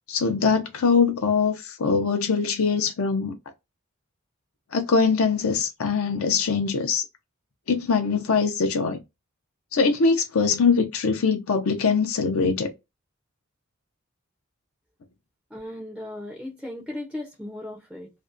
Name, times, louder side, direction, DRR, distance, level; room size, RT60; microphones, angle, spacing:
voice 1, 0.1-3.3 4.7-7.0 7.7-9.0 9.7-12.7, left 5 dB, 90° left, 0.6 m, -22 dB
voice 2, 15.5-18.1, left 1 dB, 5° right, 0.4 m, -36 dB
2.5 x 2.1 x 2.4 m
head